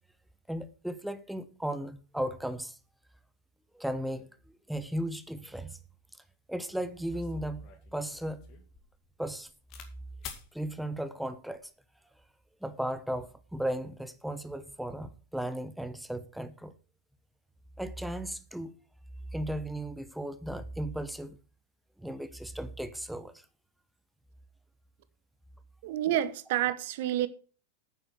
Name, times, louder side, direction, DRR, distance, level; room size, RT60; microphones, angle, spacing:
voice 1, 0.5-2.7 3.7-4.3 4.7-5.8 6.5-7.6 7.9-8.5 9.2-9.5 10.5-11.7 12.6-16.7 17.8-18.7 19.3-21.4 22.0-23.3, right 1 dB, ahead, 1.0 m, -35 dB
sound 1, 7.1-9.9 10.2-10.5 11.3-11.7, left 8 dB, 40° left, 2.3 m, -49 dB
voice 2, 25.8-27.3, right 12 dB, 50° right, 1.1 m, -29 dB
9.5 x 8.4 x 6.0 m
figure-of-eight pair, 90°, 0 cm